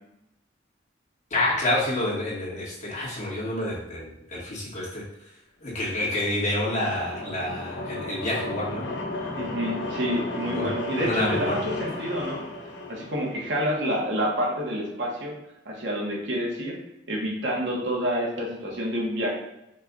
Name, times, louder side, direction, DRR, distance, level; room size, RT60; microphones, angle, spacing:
voice 1, 1.3-5.0 5.6-8.9 10.5-10.7 11.0-11.6, left 1 dB, 45° left, -6 dB, 1.6 m, -28 dB
sound 1, 6.0-13.9, left 2 dB, 90° left, 0.8 m, -34 dB
voice 2, 9.3-12.5 12.9-15.3 15.6-16.8 17.1-19.3, equal, 85° right, -2 dB, 1.2 m, -28 dB
5.3 x 2.4 x 4.0 m, 0.88 s
head